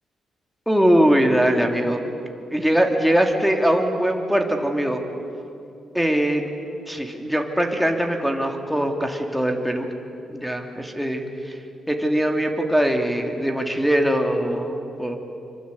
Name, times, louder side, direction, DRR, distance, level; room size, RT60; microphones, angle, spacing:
voice 1, 0.7-2.0 2.5-5.0 5.9-6.4 6.9-9.9 10.3-11.6 11.9-15.2, equal, ahead, 2 dB, 2.8 m, -21 dB
27.0 x 24.5 x 8.5 m, 2.6 s
cardioid pair, 120°, 0 cm